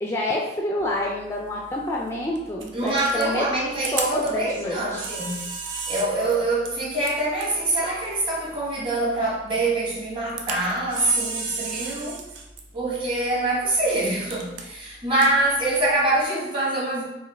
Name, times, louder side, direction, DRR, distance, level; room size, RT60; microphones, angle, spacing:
voice 1, 0.0-3.4 3.9-5.1, left 1 dB, 15° left, -2 dB, 0.3 m, -27 dB
Camera, 0.8-16.2, right 5 dB, 90° right, 0.6 m, -37 dB
voice 2, 2.7-5.5 5.9-12.3 12.7-17.0, right 2 dB, 30° right, -5 dB, 1.1 m, -25 dB
4.4 x 2.6 x 3.4 m, 0.92 s
head